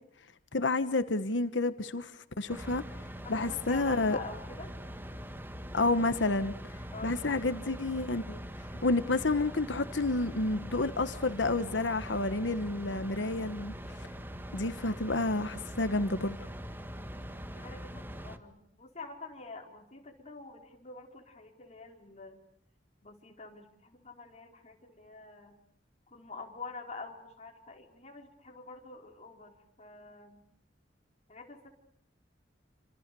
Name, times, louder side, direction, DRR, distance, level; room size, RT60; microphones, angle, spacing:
voice 1, 0.5-2.1 2.4-2.8 3.3-4.2 5.7-6.5 7.0-8.4 8.8-13.7 14.5-16.4, left 2 dB, 75° left, 1.2 m, -29 dB
sound 1, 2.5-18.4, equal, 10° right, 1.6 m, -43 dB
voice 2, 3.2-4.7 6.9-7.9 17.1-22.4 23.0-25.6 26.1-30.4 31.3-31.7, left 3 dB, 40° left, 4.7 m, -47 dB
29.0 x 26.5 x 6.9 m
head